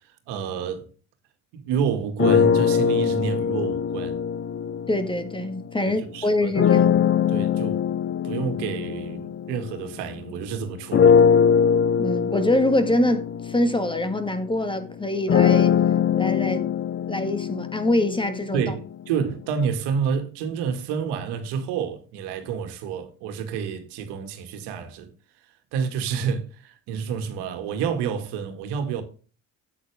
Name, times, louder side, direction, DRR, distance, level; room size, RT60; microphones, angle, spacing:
voice 1, 0.3-0.9 1.5-4.2 5.8-6.8 7.3-7.8 8.2-11.2 18.5-25.1 25.7-29.0, right 7 dB, 85° right, 2.1 m, -29 dB
sound 1, 2.2-5.7 6.5-10.3 10.9-18.9, left 7 dB, 30° left, 0.7 m, -22 dB
voice 2, 4.9-7.0 12.0-15.7 16.1-16.7 17.1-18.7, left 1 dB, 10° left, 1.6 m, -24 dB
8.7 x 8.4 x 3.5 m
cardioid pair, 100°, 40 cm